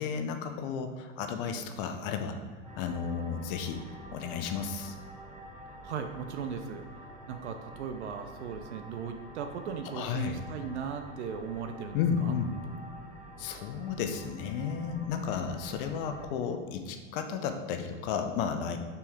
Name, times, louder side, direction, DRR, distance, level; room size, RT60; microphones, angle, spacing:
voice 1, 0.0-2.4 2.8-3.8 4.1-4.9 9.9-10.4 11.9-12.5 13.4-18.8, left 7 dB, 45° left, 6 dB, 0.6 m, -33 dB
sound 1, 2.6-16.3, right 1 dB, 15° right, 1.3 m, -48 dB
voice 2, 5.8-6.8 7.3-12.3, right 6 dB, 60° right, 7 dB, 0.6 m, -37 dB
6.2 x 5.5 x 3.5 m, 1.5 s
figure-of-eight pair, 85°, 39 cm